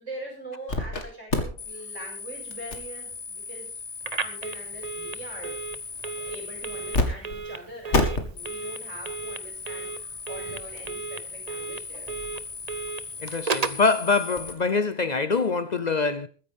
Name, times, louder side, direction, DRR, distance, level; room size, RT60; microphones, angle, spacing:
voice 1, 0.0-3.8 4.2-5.6 6.0-12.1, right 1 dB, 85° right, 7.5 m, -42 dB
sound 1, 0.7-1.0 1.3-7.0 7.3-7.4 7.9-14.5, left 3 dB, 70° left, 2.3 m, -33 dB
Telephone, 4.0-13.9, right 5 dB, 35° right, 0.9 m, -35 dB
voice 2, 13.2-16.3, left 4 dB, 45° left, 0.7 m, -24 dB
21.5 x 9.9 x 3.5 m
omnidirectional pair, 1.2 m